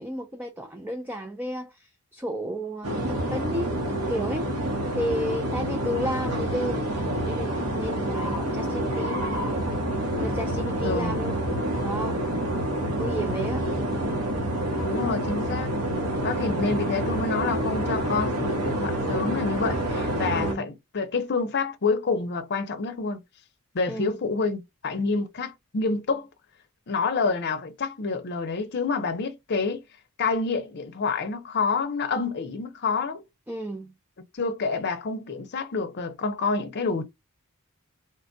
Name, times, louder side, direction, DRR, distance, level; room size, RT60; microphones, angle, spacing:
voice 1, 0.0-9.3 10.2-11.4 11.8-12.2 13.0-13.7 16.5-16.8 20.3-20.7 23.9-24.2 33.5-33.9, equal, 10° right, 0.3 m, -33 dB
sound 1, 2.8-20.5, right 1 dB, 75° right, 1.1 m, -28 dB
voice 2, 10.8-11.2 14.8-15.7 16.2-23.2 23.7-26.3 26.9-29.8 30.2-33.2 34.3-37.0, left 4 dB, 50° left, 0.6 m, -28 dB
3.2 x 2.2 x 2.5 m
head